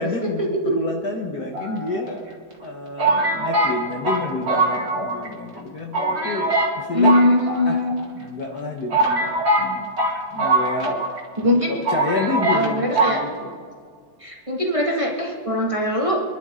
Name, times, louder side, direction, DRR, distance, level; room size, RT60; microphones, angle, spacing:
voice 1, 0.0-2.2 2.6-7.2 7.6-7.8 8.1-9.9 10.3-11.0 11.7-13.5, left 2 dB, 50° left, 2 dB, 1.7 m, -29 dB
sound 1, 1.5-2.3 3.0-5.3 5.6-5.7 5.9-6.8 7.0-8.0 8.5-8.6 8.9-11.2 11.5-11.6 11.9-12.7 13.0-13.2, right 2 dB, 30° right, 2.4 m, -22 dB
voice 2, 6.9-7.9 11.4-11.7 12.5-13.2 14.2-16.3, left 1 dB, 15° right, -2 dB, 1.9 m, -21 dB
27.5 x 11.5 x 3.8 m, 2.1 s
omnidirectional pair, 2.2 m